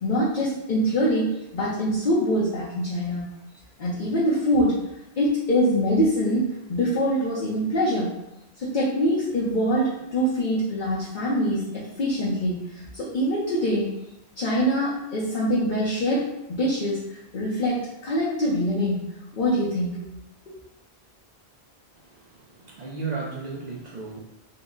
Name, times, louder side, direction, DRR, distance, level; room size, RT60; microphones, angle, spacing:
voice 1, 0.0-3.3 3.8-4.7 5.2-8.1 8.6-13.9 14.4-17.8 18.0-19.1 19.4-20.0 20.5-20.6, equal, 55° left, -7 dB, 0.8 m, -24 dB
voice 2, 21.9-24.2, right 4 dB, 55° right, -1 dB, 0.5 m, -35 dB
3.7 x 2.0 x 3.6 m, 0.88 s
omnidirectional pair, 1.1 m